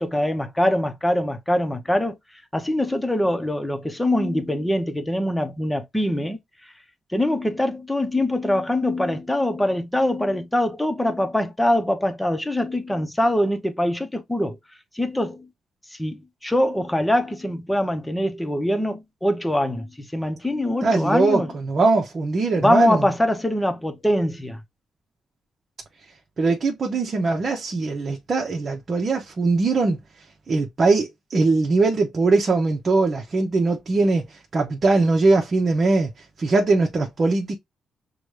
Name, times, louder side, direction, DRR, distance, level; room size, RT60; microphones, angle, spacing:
voice 1, 0.0-2.1 2.5-6.4 7.1-14.6 15.0-15.4 16.0-21.5 22.6-24.6, left 1 dB, 10° left, 0.9 m, -23 dB
voice 2, 20.8-23.1 26.4-30.0 30.5-37.6, right 3 dB, 45° right, 0.9 m, -21 dB
5.9 x 2.3 x 3.3 m
cardioid pair, 75°, 0 cm